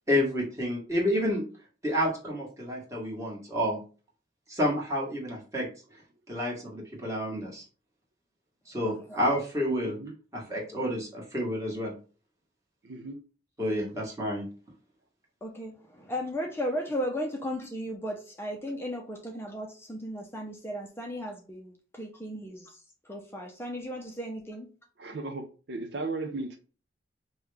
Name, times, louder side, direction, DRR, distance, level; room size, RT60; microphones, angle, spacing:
voice 1, 0.1-1.4 1.8-3.8 4.5-5.7 6.3-7.6 8.7-10.0 10.3-11.9 13.6-14.5, equal, 15° right, 1.4 m, -29 dB
voice 2, 8.9-9.2 15.4-22.8 23.1-24.7, equal, 15° left, 0.5 m, -35 dB
voice 3, 9.8-10.1 12.8-13.2 25.0-26.6, right 3 dB, 60° right, 0.5 m, -36 dB
5.3 x 2.3 x 3.3 m
head